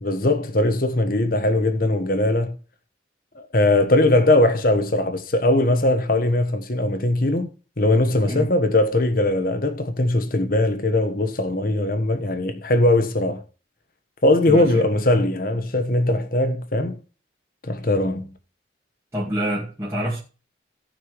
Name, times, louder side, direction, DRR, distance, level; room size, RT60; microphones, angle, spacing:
voice 1, 0.0-2.6 3.3-7.5 7.8-13.4 14.2-17.0 17.6-18.3, left 1 dB, 50° left, 1.3 m, -20 dB
voice 2, 14.5-14.8 19.1-20.2, right 1 dB, 15° right, 2.2 m, -26 dB
17.5 x 5.9 x 3.1 m
head